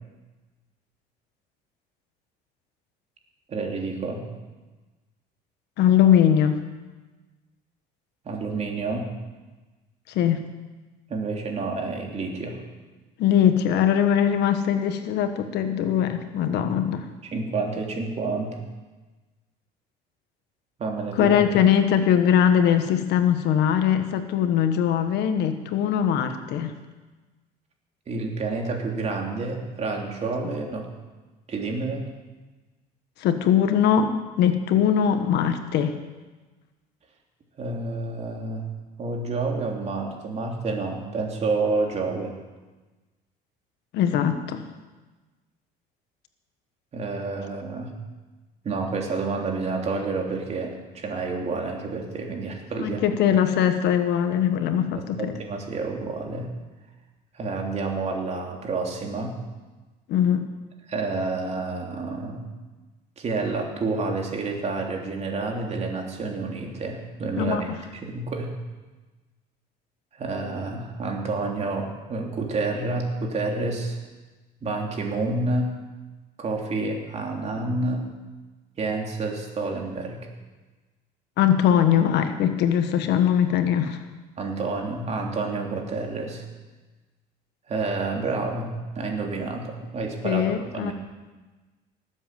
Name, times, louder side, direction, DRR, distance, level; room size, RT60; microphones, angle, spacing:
voice 1, 3.5-4.2 8.2-9.1 11.1-12.6 17.3-18.6 20.8-21.4 28.1-30.9 31.5-32.0 37.6-38.6 39.0-42.3 46.9-47.9 48.6-53.0 54.9-56.5 57.3-59.3 60.9-62.4 63.2-67.7 67.9-68.5 70.1-74.0 74.6-75.7 76.4-78.1 78.8-80.2 84.4-86.4 87.7-90.9, right 3 dB, 35° right, 1 dB, 3.2 m, -29 dB
voice 2, 5.8-6.6 10.1-10.5 13.2-17.1 21.2-26.7 33.2-36.0 43.9-44.6 52.8-55.3 60.1-60.5 67.3-67.8 81.4-84.0 90.2-90.9, left 9 dB, 65° left, 8 dB, 1.4 m, -21 dB
18.5 x 8.2 x 7.7 m, 1.2 s
cardioid pair, 110°, 19 cm